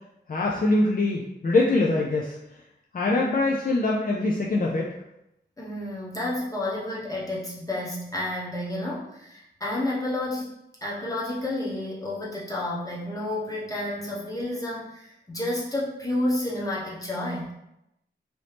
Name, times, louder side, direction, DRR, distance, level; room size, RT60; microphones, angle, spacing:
voice 1, 0.3-2.4 2.9-4.9, left 2 dB, 50° left, -3 dB, 0.4 m, -23 dB
voice 2, 5.6-10.5 10.8-17.5, left 1 dB, 20° left, -6 dB, 1.0 m, -30 dB
3.0 x 2.7 x 3.3 m, 0.85 s
wide cardioid pair, 80°, 19 cm